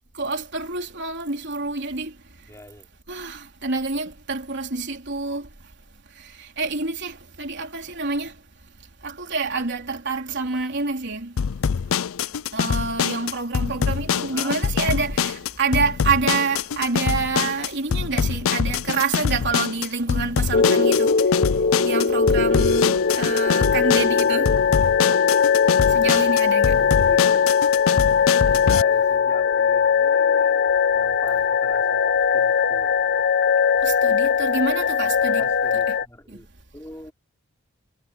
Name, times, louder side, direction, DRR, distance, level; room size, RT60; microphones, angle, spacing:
voice 1, 0.2-2.1 3.1-5.5 6.2-8.3 9.0-11.3 12.5-21.1 21.8-24.5 25.9-26.8 33.8-35.4 36.3-36.4, right 4 dB, 55° right, 3.9 m, -27 dB
voice 2, 2.5-2.9 14.2-14.8 26.7-27.6 28.6-33.1 35.2-36.5 36.7-37.1, left 1 dB, 15° left, 4.8 m, -43 dB
sound 1, 11.4-28.8, left 7 dB, 75° left, 0.4 m, -25 dB
sound 2, 20.5-36.0, left 6 dB, 50° left, 0.9 m, -20 dB
head